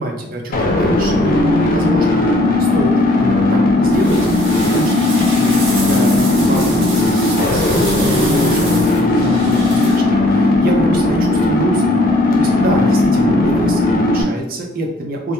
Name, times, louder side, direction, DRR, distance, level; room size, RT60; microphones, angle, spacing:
voice 1, 0.0-11.9 12.3-15.3, right 1 dB, 45° right, 1 dB, 0.4 m, -25 dB
sound 1, 0.5-14.2, left 2 dB, 40° left, 0.3 m, -15 dB
sound 2, 3.9-10.0, right 2 dB, 65° right, 1.0 m, -28 dB
2.2 x 2.0 x 2.8 m, 0.87 s
head